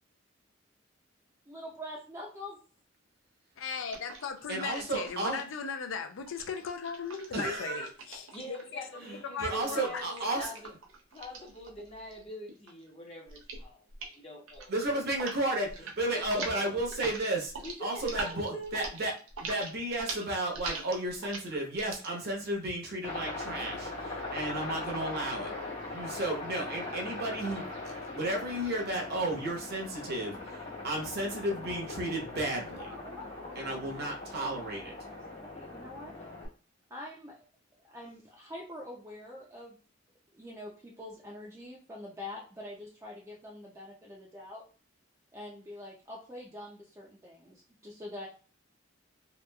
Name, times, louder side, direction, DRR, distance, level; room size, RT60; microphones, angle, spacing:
voice 1, 1.5-2.6 32.8-34.0 34.4-36.1 36.9-37.4 37.9-39.8 40.3-44.6 45.3-48.3, left 1 dB, 15° right, 0.4 m, -45 dB
voice 2, 3.6-8.8 9.2-10.0 10.3-10.5, left 5 dB, 80° left, 0.4 m, -38 dB
sound 1, 3.9-5.4 6.3-8.8 9.7-12.2 12.5-12.9 13.3-13.6 13.9-14.2 14.5-15.4 15.6-16.0 16.2-22.1, right 4 dB, 90° right, 0.6 m, -42 dB
voice 3, 4.5-5.4 7.3-7.9 9.0-10.5 14.7-17.5 17.8-19.1 19.4-25.5 25.8-32.9 33.5-34.9, right 1 dB, 55° right, 0.8 m, -33 dB
voice 4, 8.3-10.7 11.1-13.8 14.1-14.7 16.1-16.7 17.6-18.9, equal, 30° left, 0.6 m, -44 dB
Aircraft, 23.0-36.5, left 2 dB, 65° left, 1.2 m, -40 dB
2.9 x 2.3 x 2.2 m
head